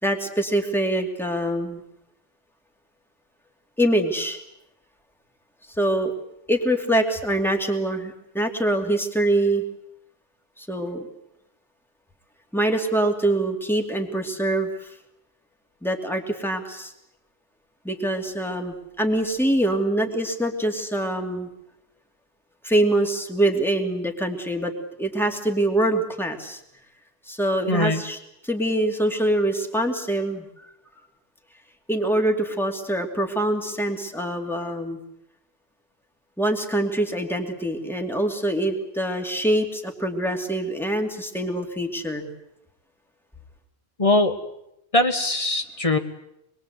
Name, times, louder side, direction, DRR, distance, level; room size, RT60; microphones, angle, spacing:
voice 1, 0.0-1.8 3.8-4.4 5.8-6.1 6.5-9.6 10.6-11.1 12.5-14.9 15.8-16.9 17.8-21.5 22.6-24.7 25.0-26.6 27.3-28.2 28.4-30.5 31.9-35.0 36.4-42.3, right 1 dB, ahead, 3 dB, 2.7 m, -24 dB
voice 2, 27.7-28.0 44.0-44.3 44.9-46.0, left 2 dB, 35° left, 7 dB, 1.8 m, -21 dB
25.5 x 22.0 x 8.2 m, 0.80 s
omnidirectional pair, 1.1 m